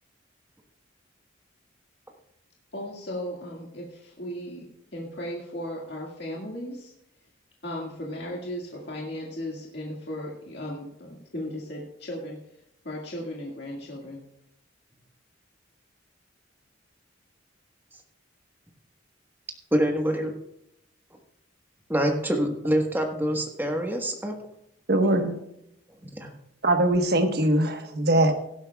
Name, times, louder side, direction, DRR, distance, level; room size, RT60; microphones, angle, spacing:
voice 1, 2.7-4.7 4.9-6.9 7.6-12.4 12.8-14.3, left 1 dB, 55° left, -3 dB, 1.9 m, -36 dB
voice 2, 19.7-20.3 21.9-24.3 26.0-26.3, equal, 10° right, 2 dB, 1.3 m, -25 dB
voice 3, 24.9-25.4 26.6-28.3, right 1 dB, 55° right, 6 dB, 1.2 m, -21 dB
17.0 x 11.5 x 2.3 m, 0.79 s
head